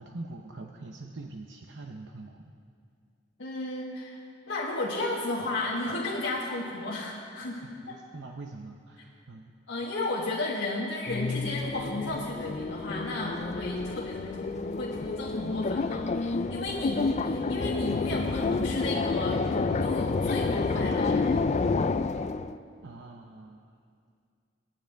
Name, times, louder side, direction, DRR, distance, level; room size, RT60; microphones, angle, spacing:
voice 1, 0.0-2.5 7.6-9.5 22.8-23.7, right 2 dB, 65° right, 2 dB, 0.8 m, -44 dB
voice 2, 3.4-4.2 4.5-8.0 9.7-21.5, left 2 dB, 75° left, -5 dB, 1.4 m, -33 dB
sound 1, 11.1-22.6, left 3 dB, 35° left, 0.4 m, -29 dB
26.5 x 9.3 x 3.5 m, 2.2 s
head